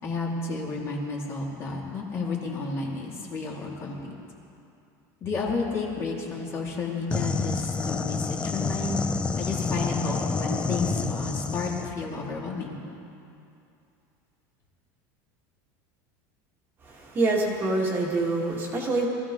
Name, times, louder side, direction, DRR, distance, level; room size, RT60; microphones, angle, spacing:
voice 1, 0.0-4.0 5.2-9.0 9.4-12.8, left 3 dB, 30° left, -2 dB, 2.3 m, -31 dB
sound 1, 7.1-11.9, left 4 dB, 10° left, 0.4 m, -28 dB
voice 2, 16.8-19.1, right 2 dB, 25° right, -2 dB, 1.7 m, -26 dB
23.5 x 14.5 x 3.7 m, 2.6 s
cardioid pair, 170°, 9 cm